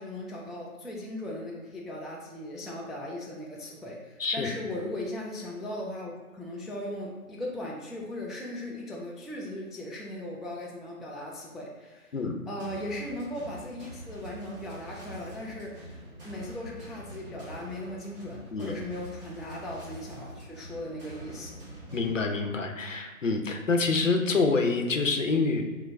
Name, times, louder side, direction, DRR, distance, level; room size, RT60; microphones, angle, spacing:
voice 1, 0.0-12.2 12.5-21.6, left 1 dB, ahead, -3 dB, 0.3 m, -38 dB
sound 1, 12.6-22.2, right 1 dB, 40° right, 1.0 m, -45 dB
voice 2, 21.9-25.6, left 3 dB, 60° left, 4 dB, 0.6 m, -26 dB
4.5 x 2.0 x 3.3 m, 1.4 s
figure-of-eight pair, 160°, 44 cm